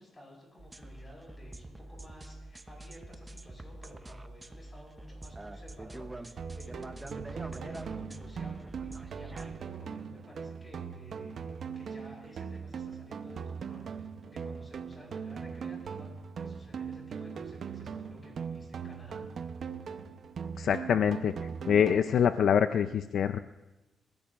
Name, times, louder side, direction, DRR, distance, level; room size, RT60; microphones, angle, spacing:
voice 1, 0.0-19.2, left 1 dB, 20° left, -1 dB, 5.8 m, -53 dB
sound 1, 0.6-9.6, right 2 dB, 15° right, 0.7 m, -45 dB
sound 2, 6.4-22.4, right 6 dB, 50° right, 0.7 m, -40 dB
voice 2, 20.6-21.3 21.6-23.4, left 8 dB, 60° left, 10 dB, 0.4 m, -25 dB
28.0 x 15.0 x 2.4 m, 1.0 s
cardioid pair, 140°, 0 cm